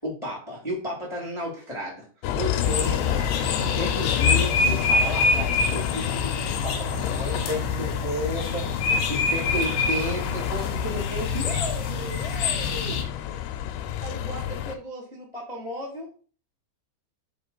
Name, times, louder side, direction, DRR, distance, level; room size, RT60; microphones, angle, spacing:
voice 1, 0.0-2.0 2.4-6.3 6.6-13.0 14.0-16.1, equal, 10° left, -4 dB, 1.6 m, -33 dB
Bus, 2.2-14.7, left 11 dB, 80° left, 2.6 m, -29 dB
sound 1, 2.6-13.0, left 3 dB, 65° left, 2.3 m, -27 dB
5.9 x 5.2 x 5.6 m, 0.38 s
omnidirectional pair, 5.2 m